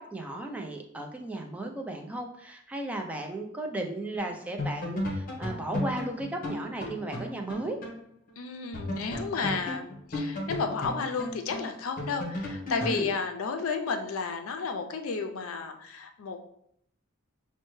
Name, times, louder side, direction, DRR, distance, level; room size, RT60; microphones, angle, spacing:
voice 1, 0.0-7.8 12.8-13.1, right 1 dB, 5° right, 2 dB, 0.4 m, -35 dB
sound 1, 4.2-4.3 4.6-8.0 8.3-8.4 8.7-13.0, left 1 dB, 45° left, 0.9 m, -34 dB
voice 2, 8.4-16.4, left 5 dB, 85° left, 6 dB, 0.4 m, -32 dB
5.3 x 2.1 x 3.1 m, 0.71 s
head